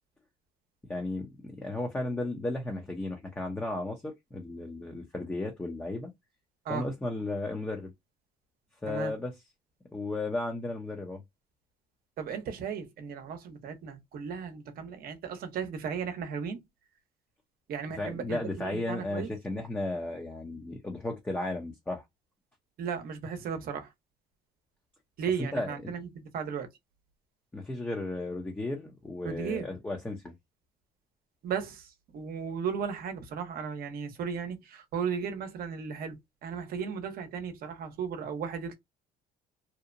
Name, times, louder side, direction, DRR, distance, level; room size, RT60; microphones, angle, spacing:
voice 1, 0.9-6.1 6.7-7.9 8.8-9.3 9.9-11.2 18.0-22.0 25.5-25.9 27.5-30.3, left 2 dB, 10° left, 0.6 m, -34 dB
voice 2, 12.2-16.6 17.7-19.3 22.8-23.9 25.2-26.7 29.2-29.7 31.4-36.2 36.4-38.7, right 6 dB, 60° right, 0.8 m, -35 dB
2.8 x 2.0 x 2.5 m
cardioid pair, 110°, 17 cm